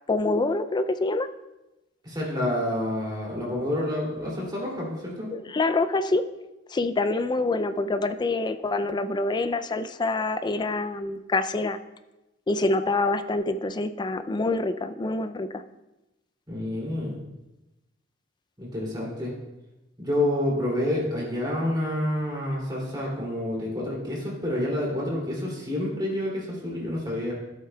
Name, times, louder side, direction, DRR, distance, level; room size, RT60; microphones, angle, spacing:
voice 1, 0.1-1.3 5.3-6.2 6.7-11.8 12.5-15.6, left 2 dB, 20° left, 11 dB, 0.4 m, -26 dB
voice 2, 2.0-5.3 16.5-17.2 18.6-19.3 20.0-27.3, left 1 dB, 20° right, -3 dB, 2.7 m, -28 dB
13.0 x 7.6 x 2.3 m, 0.99 s
head